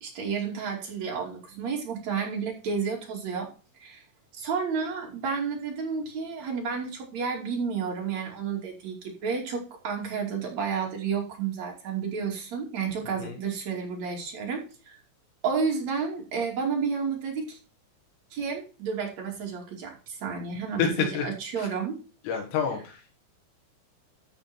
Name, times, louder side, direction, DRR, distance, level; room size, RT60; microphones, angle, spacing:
voice 1, 0.0-3.5 3.8-4.0 4.3-15.0 15.4-17.6 18.3-22.0, right 5 dB, 40° right, 0 dB, 3.2 m, -31 dB
voice 2, 13.0-13.4 20.8-21.3 21.6-21.7 22.2-23.2, left 7 dB, 80° left, 1 dB, 4.4 m, -29 dB
14.5 x 5.0 x 4.4 m, 0.34 s
omnidirectional pair, 5.9 m